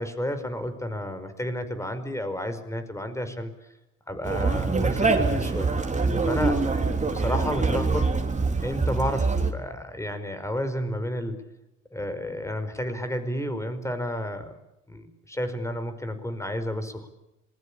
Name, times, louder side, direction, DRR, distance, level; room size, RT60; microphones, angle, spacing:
voice 1, 0.0-3.7 4.1-5.7 6.3-6.6 7.1-8.1 8.6-11.4 11.9-14.5 14.9-17.1, equal, 10° left, 9 dB, 5.1 m, -31 dB
Conversation, 4.2-9.5, right 3 dB, 25° right, 3.6 m, -24 dB
26.5 x 21.5 x 8.7 m, 0.91 s
cardioid pair, 90°, 30 cm